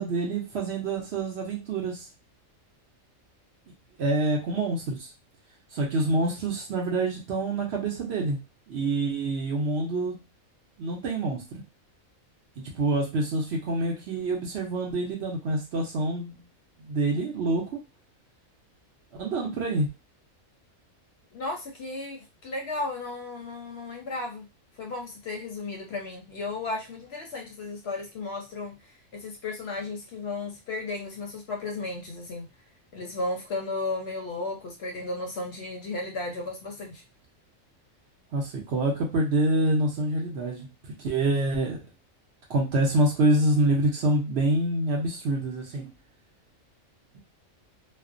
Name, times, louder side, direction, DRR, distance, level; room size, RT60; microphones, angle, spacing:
voice 1, 0.0-2.0 4.0-5.1 5.7-8.4 8.7-10.2 10.8-11.6 12.6-16.3 16.8-17.8 19.2-19.9 38.3-40.7 41.0-41.8 42.5-45.9, right 2 dB, 60° right, 0.8 m, -26 dB
voice 2, 21.3-24.5 24.8-32.5 32.9-37.0, left 2 dB, 60° left, 0.7 m, -34 dB
2.4 x 2.1 x 2.5 m
omnidirectional pair, 1.4 m